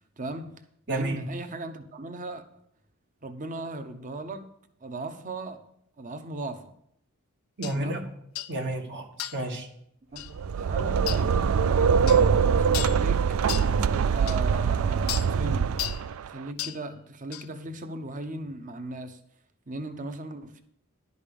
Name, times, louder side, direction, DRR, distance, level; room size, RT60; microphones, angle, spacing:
voice 1, 0.2-0.6 0.9-2.5 3.2-4.5 4.8-5.6 6.0-6.7 7.7-8.1 10.1-13.2 13.9-15.8 16.2-19.2 19.7-20.6, right 2 dB, 40° right, 0.8 m, -37 dB
voice 2, 0.9-1.2 7.6-8.0 8.5-9.7, right 1 dB, 55° right, 1.3 m, -31 dB
sound 1, 7.6-7.8 8.4-8.6 9.2-9.5 10.2-10.3 11.1-11.2 12.1-12.3 12.7-13.0 13.5-13.7 14.3-14.4 15.1-15.3 15.8-16.0 16.6-16.8 17.3-17.5, left 13 dB, 75° left, 0.5 m, -34 dB
sound 2, 10.3-16.3, right 6 dB, 75° right, 0.4 m, -23 dB
11.0 x 5.4 x 6.9 m
head